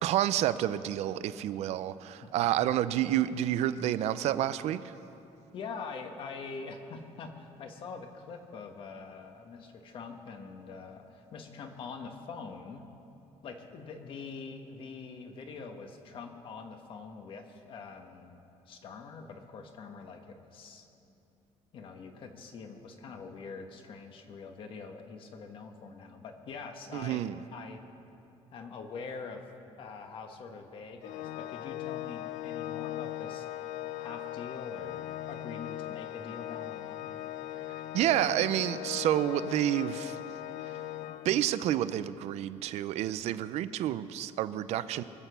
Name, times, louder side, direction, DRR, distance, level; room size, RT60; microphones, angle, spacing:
voice 1, 0.0-4.9 26.9-27.4 37.9-40.2 41.2-45.0, right 12 dB, 65° right, 0.5 m, -29 dB
voice 2, 2.2-2.7 5.5-12.8 13.4-18.4 18.7-20.9 21.7-27.2 27.5-27.8 28.5-29.4 29.8-33.5 34.0-37.1, left 4 dB, 45° left, 1.3 m, -44 dB
Organ, 31.0-41.8, left 13 dB, 90° left, 0.4 m, -39 dB
23.0 x 8.1 x 6.9 m
cardioid pair, 175°, 12 cm